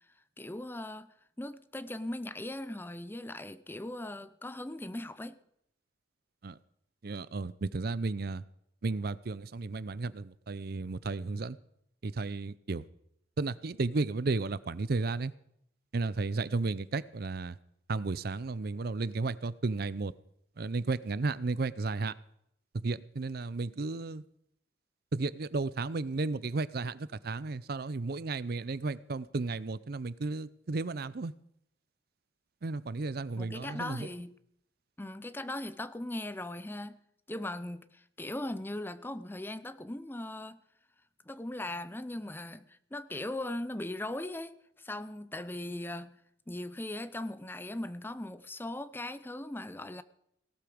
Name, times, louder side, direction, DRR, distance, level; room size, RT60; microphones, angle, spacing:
voice 1, 0.4-5.4 33.4-34.4 35.0-37.0 37.3-40.6 41.3-46.2 46.5-50.0, left 1 dB, 10° left, 0.6 m, -39 dB
voice 2, 7.0-8.4 8.8-11.6 12.0-12.8 13.4-15.3 15.9-17.6 17.9-20.1 20.6-22.1 22.8-24.2 25.1-31.3 32.6-34.1, right 3 dB, 55° right, 0.6 m, -33 dB
18.0 x 12.5 x 5.1 m
head